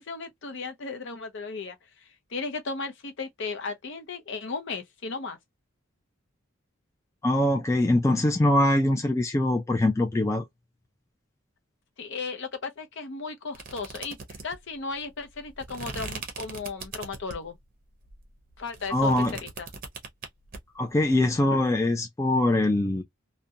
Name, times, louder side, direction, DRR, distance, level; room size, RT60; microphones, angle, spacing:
voice 1, 0.0-1.8 2.3-5.4 12.0-14.2 14.4-17.6 18.6-19.1 19.4-19.7, left 4 dB, 55° left, 0.6 m, -35 dB
voice 2, 7.2-10.4 18.9-19.4 20.8-23.0, left 1 dB, 15° left, 0.3 m, -23 dB
sound 1, 13.5-17.6 18.0-20.6, right 4 dB, 40° right, 0.7 m, -40 dB
2.4 x 2.1 x 2.6 m
head